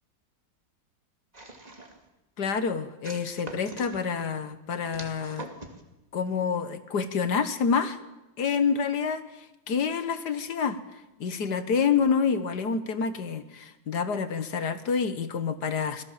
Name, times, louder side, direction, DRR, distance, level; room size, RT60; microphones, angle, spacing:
sound 1, 1.3-2.1 3.0-4.0 4.9-5.8, right 2 dB, 20° right, 2.4 m, -43 dB
voice 1, 2.4-5.5 6.1-8.0 8.4-10.8 11.2-16.0, left 6 dB, 70° left, 11 dB, 1.8 m, -28 dB
26.5 x 18.0 x 7.4 m, 0.99 s
omnidirectional pair, 1.9 m